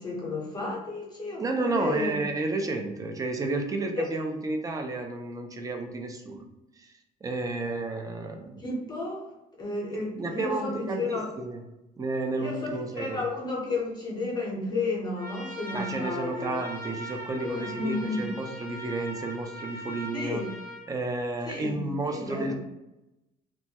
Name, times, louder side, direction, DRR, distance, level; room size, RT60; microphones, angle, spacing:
voice 1, 0.0-2.2 4.0-4.1 8.6-9.3 9.6-11.3 12.4-16.6 17.4-18.2 20.1-20.5 21.4-22.5, left 3 dB, 25° left, -3 dB, 0.7 m, -32 dB
voice 2, 1.4-6.5 6.8-6.9 7.2-8.6 10.2-11.6 12.0-13.3 15.7-20.4 20.9-22.5, right 2 dB, 20° right, 4 dB, 0.4 m, -31 dB
Trumpet, 15.2-20.9, equal, 70° right, 0.8 m, -40 dB
2.2 x 2.1 x 2.7 m, 0.94 s
cardioid pair, 110°, 17 cm